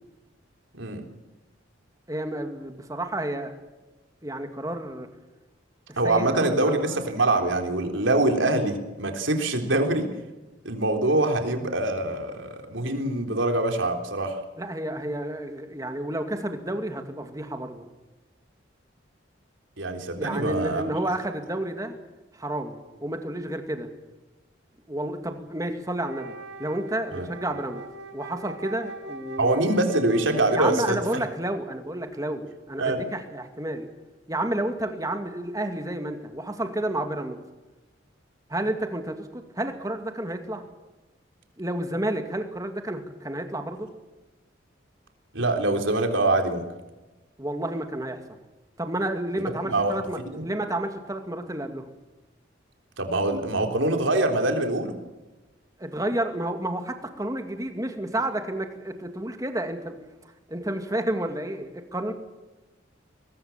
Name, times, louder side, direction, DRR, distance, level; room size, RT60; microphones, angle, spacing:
voice 1, 2.1-3.5 4.2-5.1 5.9-7.0 14.6-17.9 20.2-21.9 22.3-23.9 24.9-26.3 26.6-27.8 28.1-29.7 30.5-33.9 34.3-37.4 38.5-40.6 41.6-43.9 47.4-48.2 48.8-51.9 55.8-62.1, right 1 dB, 20° right, 6 dB, 2.3 m, -31 dB
voice 2, 6.0-10.1 10.6-14.4 19.8-20.8 27.1-27.3 29.4-31.0 32.8-33.0 45.3-46.6 49.6-50.0 50.3-50.4 53.0-55.0, right 2 dB, 80° right, 4 dB, 3.8 m, -24 dB
Wind instrument woodwind instrument, 26.0-31.2, right 2 dB, 60° right, 2.8 m, -41 dB
22.0 x 20.5 x 7.4 m, 1.1 s
head